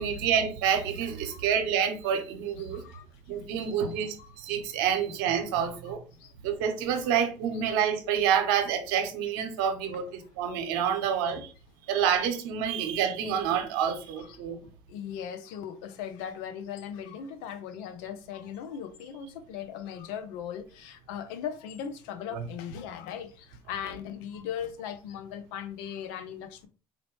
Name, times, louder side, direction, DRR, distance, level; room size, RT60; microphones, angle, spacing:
voice 1, 0.0-2.8 3.3-6.0 6.4-11.5 11.9-14.6 22.3-22.4, right 8 dB, 75° right, 0.7 m, -28 dB
voice 2, 2.6-3.1 4.2-4.4 6.2-6.3 11.2-11.4 14.2-26.7, left 8 dB, 75° left, 0.5 m, -39 dB
3.8 x 2.1 x 3.0 m
hypercardioid pair, 70°, 11 cm